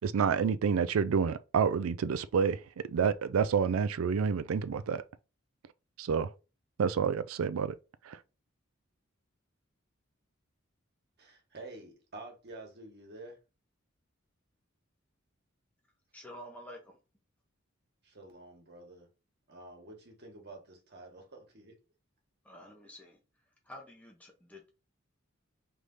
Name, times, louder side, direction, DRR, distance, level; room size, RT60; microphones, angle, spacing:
voice 1, 0.0-5.0 6.0-6.3 6.8-7.8 8.0-8.2, right 6 dB, 90° right, 0.4 m, -29 dB
voice 2, 11.2-13.4 18.0-19.1 19.5-21.7, right 2 dB, 55° right, 1.4 m, -49 dB
voice 3, 16.1-17.0 22.4-23.2 23.6-24.7, equal, 5° left, 0.7 m, -49 dB
3.4 x 3.3 x 3.9 m
head